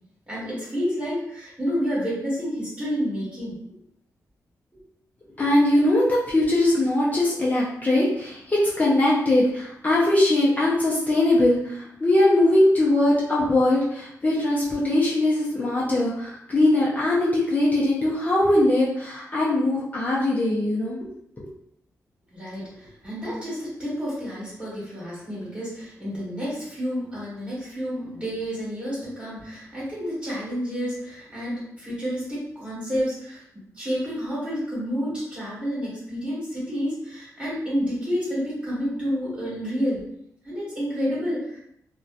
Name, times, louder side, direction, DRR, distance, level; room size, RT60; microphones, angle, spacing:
voice 1, 0.3-3.7 4.7-4.8 22.3-33.4 33.7-40.0 40.4-41.6, equal, 20° right, -8 dB, 1.4 m, -29 dB
voice 2, 5.4-21.5, left 1 dB, 25° left, -6 dB, 0.5 m, -21 dB
2.7 x 2.2 x 2.4 m, 0.73 s
cardioid pair, 95°, 6 cm